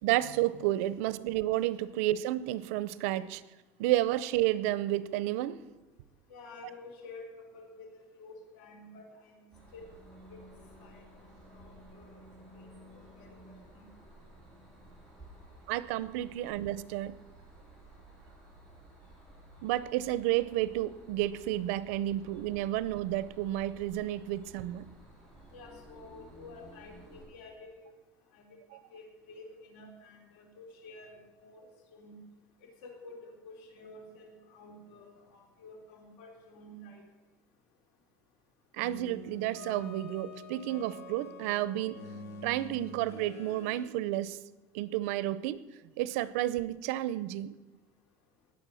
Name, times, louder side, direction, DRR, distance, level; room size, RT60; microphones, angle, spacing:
voice 1, 0.0-3.4 3.8-5.6 15.7-17.2 19.6-24.8 28.7-28.8 38.7-42.0 42.4-44.4 44.7-45.6 46.0-47.5, right 14 dB, 90° right, 0.6 m, -31 dB
voice 2, 6.3-7.2 7.5-9.9 10.3-10.4 10.8-11.0 11.5-12.2 12.5-12.7 13.7-13.8 25.5-27.9 28.3-28.5 28.9-32.2 32.8-37.0, left 2 dB, 75° left, 3.6 m, -50 dB
sound 1, 9.5-27.3, right 1 dB, 5° left, 4.8 m, -54 dB
sound 2, 38.8-43.9, left 3 dB, 45° left, 1.8 m, -46 dB
19.0 x 7.2 x 6.3 m
cardioid pair, 160°, 7 cm